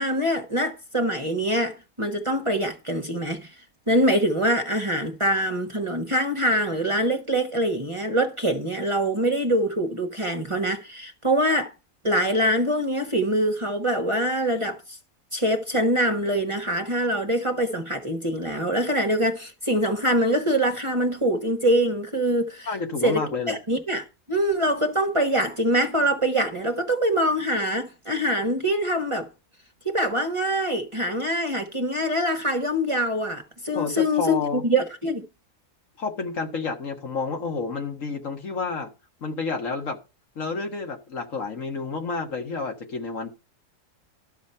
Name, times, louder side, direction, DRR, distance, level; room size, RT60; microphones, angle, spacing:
voice 1, 0.0-3.6 3.9-11.7 12.0-15.0 15.3-22.7 23.0-23.2 23.5-29.3 29.8-35.2, equal, 25° right, 1.1 m, -24 dB
voice 2, 22.7-23.6 33.7-34.6 36.0-38.9 39.2-40.0 40.4-43.3, left 4 dB, 65° left, 1.8 m, -30 dB
12.5 x 7.0 x 4.4 m
omnidirectional pair, 1.5 m